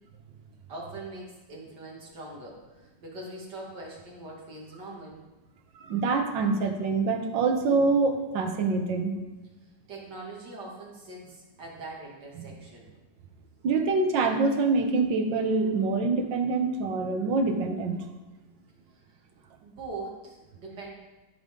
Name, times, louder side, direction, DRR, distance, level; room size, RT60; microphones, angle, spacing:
voice 1, 0.7-5.2 9.9-12.9 18.9-19.2 19.6-20.9, right 2 dB, 70° right, -3 dB, 2.7 m, -42 dB
voice 2, 5.8-9.1 13.6-18.0, right 3 dB, 90° right, 5 dB, 1.7 m, -25 dB
14.5 x 5.4 x 3.8 m, 1.1 s
omnidirectional pair, 1.9 m